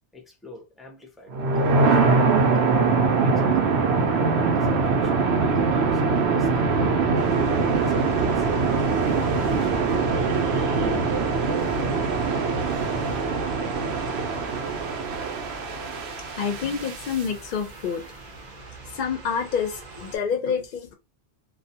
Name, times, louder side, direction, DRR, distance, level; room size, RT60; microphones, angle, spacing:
voice 1, 0.1-2.1 3.0-3.9 4.2-7.0 7.7-11.1, left 1 dB, ahead, 0.4 m, -42 dB
sound 1, 1.3-17.2, right 4 dB, 75° right, 0.8 m, -23 dB
sound 2, 7.1-20.2, right 2 dB, 50° right, 0.7 m, -42 dB
voice 2, 16.3-18.0 18.9-20.9, left 6 dB, 60° left, 0.6 m, -28 dB
2.3 x 2.1 x 2.7 m
omnidirectional pair, 1.1 m